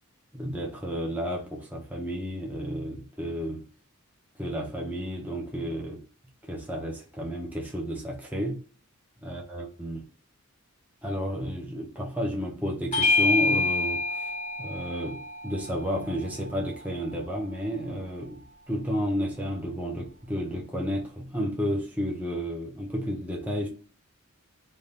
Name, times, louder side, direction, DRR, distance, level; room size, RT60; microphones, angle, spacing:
voice 1, 0.3-3.6 4.4-6.0 6.5-8.6 9.2-10.0 11.0-14.3 14.6-23.7, equal, 5° right, 0.6 m, -32 dB
Bell / Doorbell, 12.9-17.8, left 3 dB, 30° left, 0.7 m, -28 dB
2.6 x 2.2 x 3.3 m
head